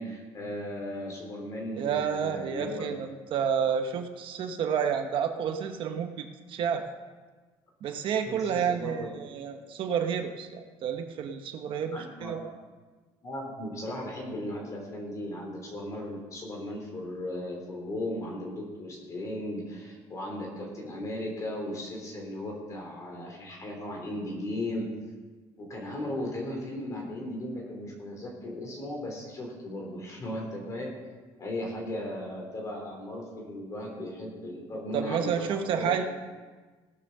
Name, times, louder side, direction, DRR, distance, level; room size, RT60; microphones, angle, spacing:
voice 1, 0.0-2.9 8.3-9.4 11.9-12.4 13.2-24.9 25.6-30.9 31.4-36.0, left 1 dB, 30° left, 0 dB, 3.6 m, -36 dB
voice 2, 1.7-6.8 7.8-12.4 34.9-36.0, right 7 dB, 55° right, 6 dB, 1.0 m, -30 dB
17.5 x 7.1 x 6.6 m, 1.4 s
cardioid pair, 165°, 11 cm